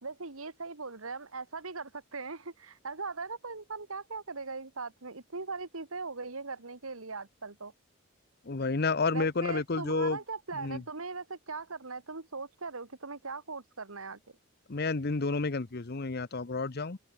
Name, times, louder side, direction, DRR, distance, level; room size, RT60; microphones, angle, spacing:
voice 1, 0.0-7.7 9.1-14.2, right 4 dB, 85° right, 2.0 m, -40 dB
voice 2, 8.4-10.2 10.5-10.8 14.7-17.0, left 3 dB, 50° left, 0.9 m, -30 dB
open air
head